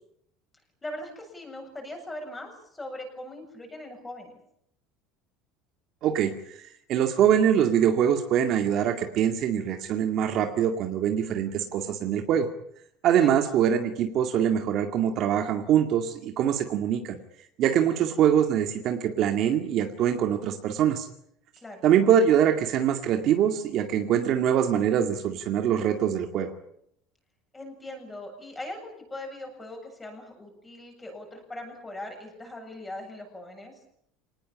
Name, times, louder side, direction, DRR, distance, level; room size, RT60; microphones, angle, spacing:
voice 1, 0.8-4.3 13.2-13.3 17.8-18.0 21.6-21.8 27.5-33.7, left 1 dB, 10° left, 3 dB, 7.8 m, -40 dB
voice 2, 6.0-12.5 13.0-17.2 17.6-21.1 21.8-26.5, right 9 dB, 45° right, 5 dB, 2.2 m, -24 dB
26.5 x 19.5 x 8.8 m, 0.72 s
cardioid pair, 165°, 0 cm